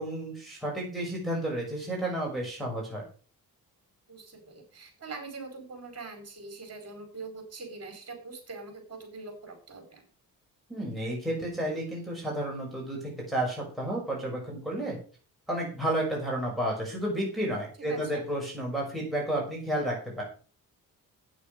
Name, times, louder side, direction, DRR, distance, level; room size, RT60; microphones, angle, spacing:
voice 1, 0.0-3.0 10.7-15.0 15.5-20.2, right 1 dB, ahead, -4 dB, 5.9 m, -31 dB
voice 2, 4.1-10.0 17.9-18.2, right 3 dB, 40° right, 6 dB, 4.8 m, -43 dB
9.2 x 8.8 x 6.6 m, 0.39 s
cardioid pair, 105°, 36 cm